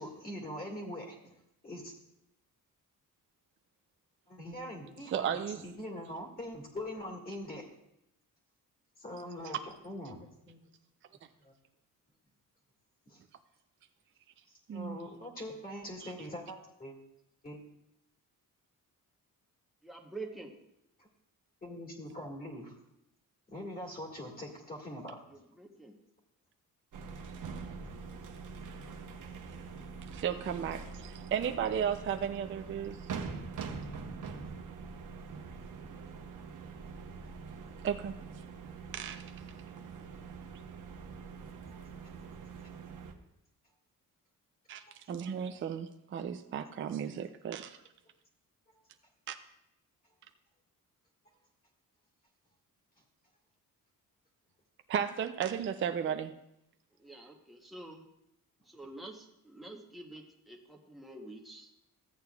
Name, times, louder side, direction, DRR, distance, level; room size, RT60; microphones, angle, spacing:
voice 1, 0.0-1.3 1.6-1.9 4.3-7.6 9.0-10.6 11.4-11.5 13.1-13.2 14.7-17.0 17.4-17.6 21.0-21.1 21.6-22.7 23.5-25.2 41.7-41.8, left 1 dB, 25° left, -1 dB, 1.9 m, -43 dB
voice 2, 5.1-5.6 14.7-15.0 16.0-16.1 30.1-33.0 37.8-38.2 38.9-39.2 44.7-47.8 49.3-49.4 54.9-56.3, right 8 dB, 35° right, 7 dB, 0.4 m, -34 dB
voice 3, 19.8-20.6 25.3-26.0 57.0-58.0 58.6-61.7, right 2 dB, ahead, 1 dB, 0.9 m, -47 dB
sound 1, 26.9-43.1, right 5 dB, 60° right, 0.9 m, -44 dB
14.5 x 8.7 x 2.3 m, 0.82 s
wide cardioid pair, 165°, 34 cm